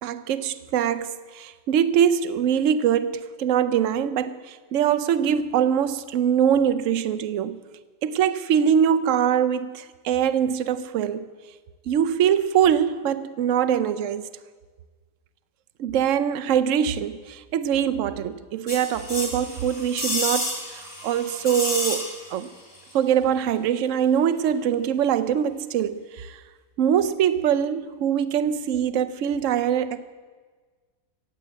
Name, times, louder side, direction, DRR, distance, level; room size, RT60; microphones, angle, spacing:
voice 1, 0.0-7.6 8.0-11.2 11.9-14.3 15.8-22.1 22.3-22.5 22.9-26.4 26.8-30.0, right 9 dB, 60° right, 11 dB, 0.9 m, -23 dB
sound 1, 18.7-22.5 22.7-22.8, left 1 dB, 25° left, 3.2 m, -30 dB
16.5 x 8.1 x 8.1 m, 1.4 s
omnidirectional pair, 1.8 m